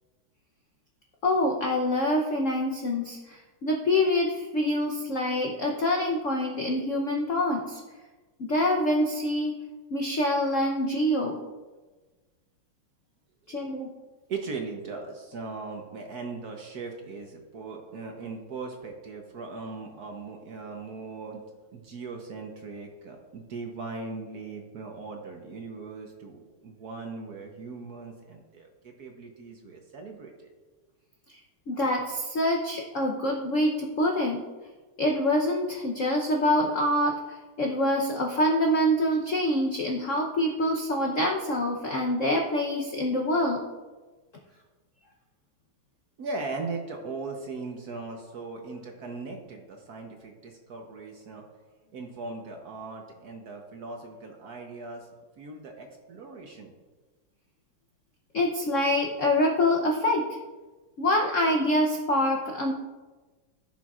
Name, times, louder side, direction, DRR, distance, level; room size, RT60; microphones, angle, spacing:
voice 1, 1.2-7.8 8.4-9.5 9.9-11.4 13.5-13.9 31.7-34.4 35.0-43.6 58.3-60.2 61.0-62.7, left 1 dB, 65° left, 0 dB, 0.7 m, -25 dB
voice 2, 13.4-13.7 14.3-21.4 21.7-30.5 46.2-51.4 51.9-55.1 55.4-56.7, right 3 dB, 60° right, 2 dB, 1.1 m, -39 dB
15.0 x 6.1 x 2.4 m, 1.3 s
omnidirectional pair, 2.3 m